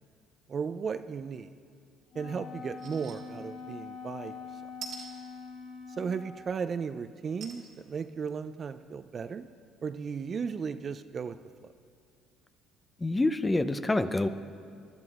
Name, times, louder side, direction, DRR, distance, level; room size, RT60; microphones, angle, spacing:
voice 1, 0.5-1.5 2.1-4.3 6.0-9.5 9.8-11.4, right 6 dB, 45° right, 10 dB, 0.4 m, -35 dB
Wind instrument woodwind instrument, 2.1-6.4, left 5 dB, 65° left, 1.5 m, -44 dB
sound 1, 2.8-3.2 3.6-3.7 4.8-5.1 7.4-7.6 8.2-8.3 8.6-8.7, right 6 dB, 65° right, 1.9 m, -42 dB
voice 2, 13.0-14.3, left 2 dB, 15° left, 10 dB, 0.6 m, -26 dB
22.0 x 12.0 x 2.5 m, 2.3 s
hypercardioid pair, 65°, 0 cm